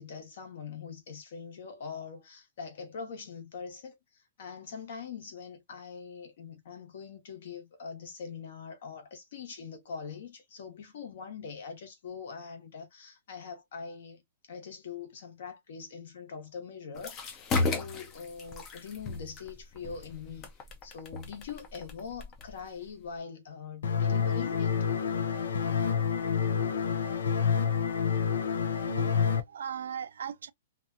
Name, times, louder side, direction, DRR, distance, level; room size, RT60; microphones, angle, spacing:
voice 1, 0.0-14.2 14.5-20.5 20.8-24.9, left 6 dB, 60° left, 1.1 m, -43 dB
sound 1, 16.9-23.2, left 3 dB, 20° left, 0.5 m, -36 dB
sound 2, 23.8-29.4, left 7 dB, 90° left, 0.5 m, -28 dB
voice 2, 28.9-30.5, right 8 dB, 85° right, 0.4 m, -39 dB
2.7 x 2.3 x 2.5 m
hypercardioid pair, 165°, 0 cm